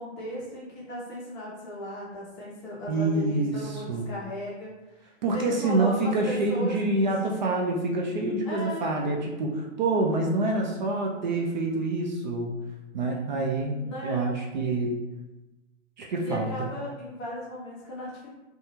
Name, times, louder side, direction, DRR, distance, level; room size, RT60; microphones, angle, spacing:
voice 1, 0.0-7.4 8.4-8.9 13.8-14.3 16.2-18.3, equal, 25° left, -5 dB, 0.5 m, -36 dB
voice 2, 2.9-4.1 5.2-12.5 12.9-15.0 16.0-16.5, right 2 dB, 40° right, -1 dB, 0.4 m, -27 dB
2.6 x 2.3 x 2.9 m, 1.0 s
figure-of-eight pair, 110°, 37 cm